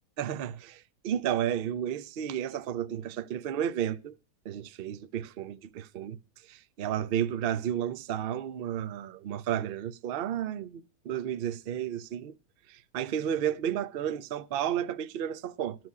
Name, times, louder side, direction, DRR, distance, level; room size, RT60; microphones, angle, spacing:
voice 1, 0.2-4.2 4.4-6.2 6.4-12.3 12.7-15.8, right 10 dB, 75° right, 0.5 m, -32 dB
13.0 x 7.9 x 4.8 m
omnidirectional pair, 1.8 m